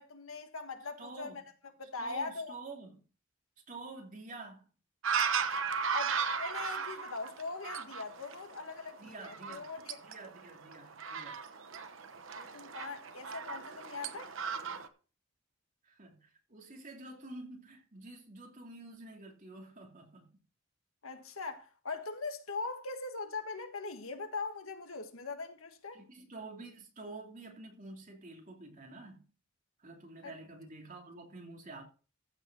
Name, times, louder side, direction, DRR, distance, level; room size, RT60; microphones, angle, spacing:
voice 1, 0.0-1.4 1.8-2.5 5.9-10.0 12.3-14.3 21.0-26.0 30.2-30.3, left 4 dB, 80° left, 1.6 m, -41 dB
voice 2, 1.0-1.4 2.0-3.0 3.6-4.7 9.0-9.7 10.0-11.4 15.8-20.3 25.9-29.2 29.8-31.8, right 2 dB, 40° right, 2.8 m, -48 dB
sound 1, 5.0-14.9, right 6 dB, 65° right, 1.0 m, -36 dB
14.5 x 5.2 x 6.1 m
head